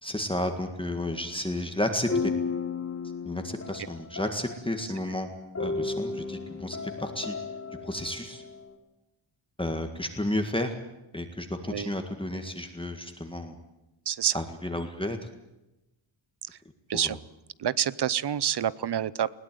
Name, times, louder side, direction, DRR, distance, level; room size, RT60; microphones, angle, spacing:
voice 1, 0.0-2.3 3.2-5.3 5.6-7.3 7.8-8.4 9.6-10.7 11.1-13.6 14.3-15.2 16.9-17.2, left 1 dB, 10° left, 5 dB, 1.8 m, -32 dB
sound 1, 1.0-1.4 2.1-4.9 5.5-8.7, left 4 dB, 30° left, 3.4 m, -34 dB
voice 2, 14.1-14.4 16.9-17.2 17.6-19.3, right 9 dB, 55° right, 20 dB, 0.7 m, -27 dB
21.0 x 17.5 x 9.3 m, 0.98 s
wide cardioid pair, 145°, 48 cm